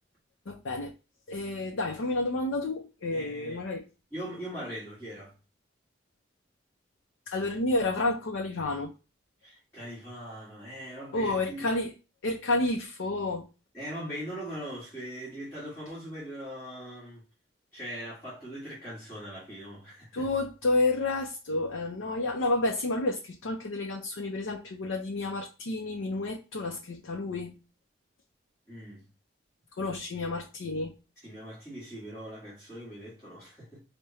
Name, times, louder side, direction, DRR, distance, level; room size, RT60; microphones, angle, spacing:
voice 1, 0.5-0.9 1.3-3.8 7.3-8.9 11.1-11.9 12.2-13.5 20.1-27.6 29.8-30.9, left 2 dB, 85° left, 0.5 m, -30 dB
voice 2, 3.1-3.6 4.1-5.3 9.4-11.6 13.7-17.2 17.7-20.3 28.7-29.0 31.2-33.8, equal, 15° left, 1.6 m, -41 dB
4.8 x 2.2 x 2.7 m
head